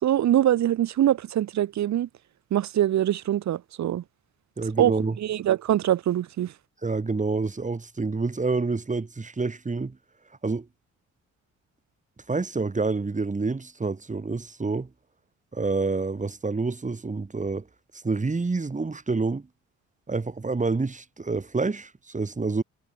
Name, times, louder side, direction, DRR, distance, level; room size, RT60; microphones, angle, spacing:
voice 1, 0.0-2.1 2.5-4.0 4.8-4.9 5.2-6.5, right 12 dB, 65° right, 1.6 m, -23 dB
voice 2, 4.6-5.2 6.8-10.0 10.4-10.7 12.3-14.9 15.5-17.7 17.9-19.5 20.1-22.6, right 3 dB, 25° right, 7.4 m, -28 dB
cardioid pair, 90°, 30 cm